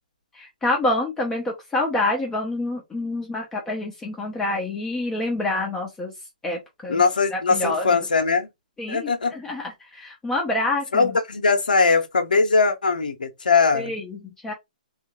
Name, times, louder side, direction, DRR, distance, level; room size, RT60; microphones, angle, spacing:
voice 1, 0.3-6.1 6.4-7.0 7.3-8.0 8.8-11.2 13.7-14.5, left 2 dB, 10° left, 0.9 m, -27 dB
voice 2, 6.9-8.5 8.9-9.3 10.9-13.9, left 4 dB, 85° left, 0.9 m, -20 dB
3.5 x 2.4 x 3.1 m
hypercardioid pair, 135°, 4 cm